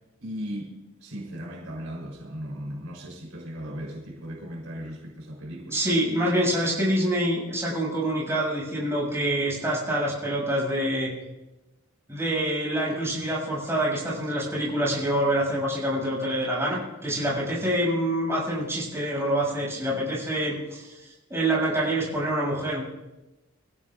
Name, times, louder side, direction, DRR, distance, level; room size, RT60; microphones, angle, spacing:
voice 1, 0.2-0.7 1.0-5.8, equal, 75° right, -2 dB, 4.1 m, -37 dB
voice 2, 5.7-11.1 12.1-22.8, right 1 dB, 10° right, -6 dB, 6.9 m, -26 dB
24.0 x 16.0 x 2.5 m, 1.0 s
head